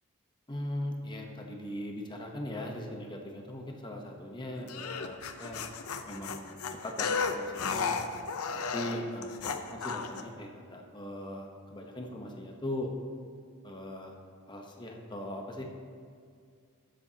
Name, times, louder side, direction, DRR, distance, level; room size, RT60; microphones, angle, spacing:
voice 1, 0.5-5.6 6.1-6.6 6.8-7.9 8.5-12.9 13.6-14.1 14.5-15.7, left 1 dB, 20° left, 1 dB, 1.0 m, -39 dB
sound 1, 4.7-10.2, left 5 dB, 85° left, 0.7 m, -34 dB
19.5 x 7.6 x 2.9 m, 2.2 s
head